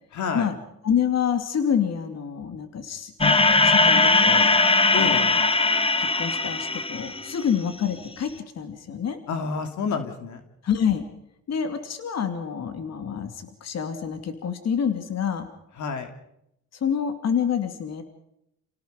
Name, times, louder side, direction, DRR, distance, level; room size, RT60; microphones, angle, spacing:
voice 1, 0.1-0.5 4.9-5.2 9.3-10.4 15.8-16.1, left 5 dB, 75° left, 6 dB, 2.8 m, -29 dB
voice 2, 0.8-4.5 5.0-5.4 6.0-8.3 8.6-9.2 10.6-11.0 11.5-15.5 16.8-18.0, left 8 dB, 60° left, 7 dB, 2.7 m, -27 dB
sound 1, 3.2-7.6, left 3 dB, 20° left, 1.3 m, -20 dB
29.5 x 17.5 x 5.3 m, 0.79 s
cardioid pair, 95°, 30 cm